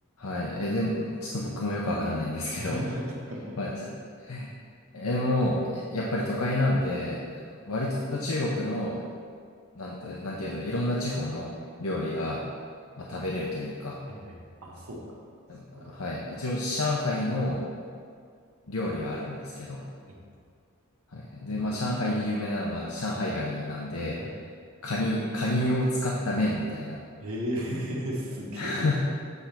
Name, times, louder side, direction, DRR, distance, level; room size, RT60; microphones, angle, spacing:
voice 1, 0.2-2.8 3.6-3.9 4.2-4.5 4.9-9.0 9.7-11.5 11.8-12.4 13.0-14.0 15.5-17.6 18.7-19.8 21.1-24.2 24.8-27.0 28.6-29.0, left 1 dB, 75° left, -3 dB, 0.8 m, -29 dB
voice 2, 2.6-3.6 14.1-15.2 15.7-15.9 20.1-20.2 21.5-22.1 24.1-24.3 27.2-29.0, equal, 70° right, -3 dB, 1.4 m, -35 dB
8.1 x 3.4 x 5.9 m, 2.1 s
head